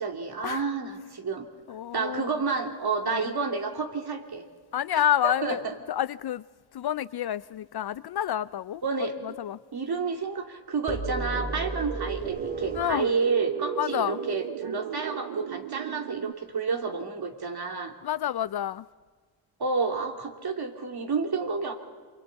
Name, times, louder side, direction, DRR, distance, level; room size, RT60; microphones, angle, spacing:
voice 1, 0.0-1.5 1.9-4.4 4.9-5.7 8.8-9.1 9.7-17.9 19.6-21.7, right 4 dB, 50° right, 2.8 m, -30 dB
voice 2, 1.7-2.4 3.1-3.3 4.7-5.6 5.9-6.4 6.7-8.8 9.2-9.6 12.7-13.1 13.8-14.2 18.0-18.9, left 11 dB, 55° left, 0.5 m, -29 dB
sound 1, 10.9-15.6, right 2 dB, 20° right, 2.4 m, -36 dB
sound 2, 11.1-16.3, right 13 dB, 85° right, 0.6 m, -36 dB
28.0 x 23.5 x 4.1 m
cardioid pair, 65°, 47 cm